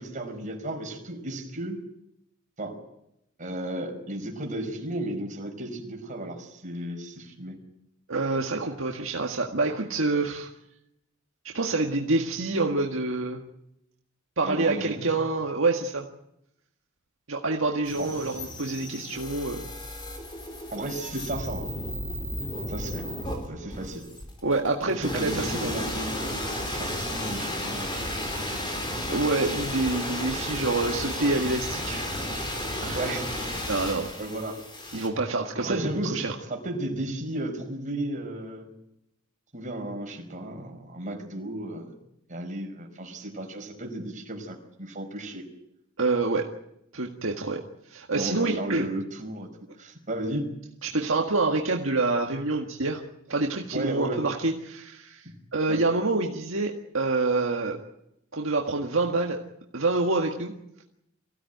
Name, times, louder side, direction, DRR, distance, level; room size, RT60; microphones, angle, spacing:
voice 1, 0.0-1.8 2.6-2.8 3.4-7.5 14.4-15.1 18.0-18.1 20.7-21.7 22.7-23.1 23.5-24.1 24.9-27.9 32.9-33.3 34.2-34.6 35.6-38.7 39.5-41.9 42.3-45.4 48.1-49.5 49.8-50.5 53.7-54.2 55.7-55.8, right 1 dB, 35° right, 2 dB, 5.3 m, -34 dB
voice 2, 8.1-10.5 11.5-13.4 14.4-16.1 17.3-19.7 24.4-25.7 29.1-32.2 32.8-33.0 33.7-34.1 34.9-36.3 46.0-46.5 46.9-47.6 47.9-48.9 50.8-53.0 53.3-57.8 58.3-59.4 59.7-60.5, right 3 dB, 65° right, 1 dB, 1.8 m, -27 dB
sound 1, 17.8-35.1, left 1 dB, 20° left, 4.5 m, -33 dB
24.0 x 16.5 x 9.4 m, 0.81 s
head